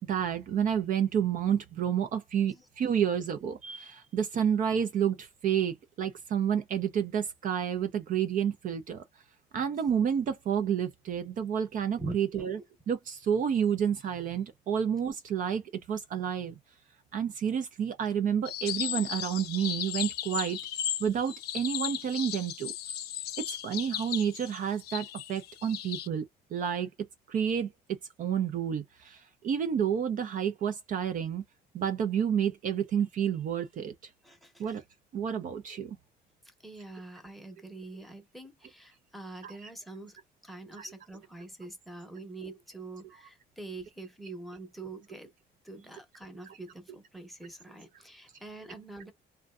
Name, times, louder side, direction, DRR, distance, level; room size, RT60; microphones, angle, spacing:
voice 1, 0.1-9.0 9.5-12.6 12.9-15.6 15.9-16.5 17.1-20.6 21.0-22.7 23.6-26.2 26.5-26.9 27.3-27.7 28.2-29.2 29.4-31.4 31.7-33.9 34.6-34.8 35.1-36.0 39.4-39.5 40.8-40.9, right 8 dB, 50° right, 0.5 m, -30 dB
voice 2, 12.0-12.6 34.2-34.8 36.6-40.2 40.4-45.3 45.6-49.1, right 3 dB, ahead, 0.8 m, -44 dB
sound 1, 18.4-26.1, left 11 dB, 70° left, 0.5 m, -36 dB
2.5 x 2.2 x 2.4 m
cardioid pair, 110°, 17 cm